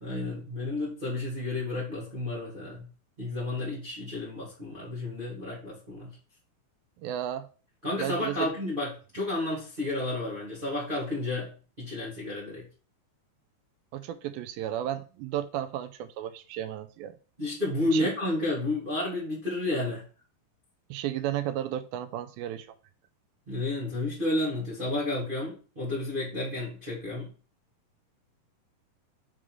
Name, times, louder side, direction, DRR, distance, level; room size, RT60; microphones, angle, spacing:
voice 1, 0.0-2.8 3.2-6.1 7.8-11.5 11.8-12.6 17.4-20.0 23.5-27.3, left 2 dB, 35° right, 0.8 m, -31 dB
voice 2, 7.0-7.5 8.0-8.5 13.9-17.2 17.9-18.1 20.9-22.7, right 11 dB, 85° right, 2.4 m, -33 dB
6.4 x 3.7 x 4.6 m
omnidirectional pair, 4.1 m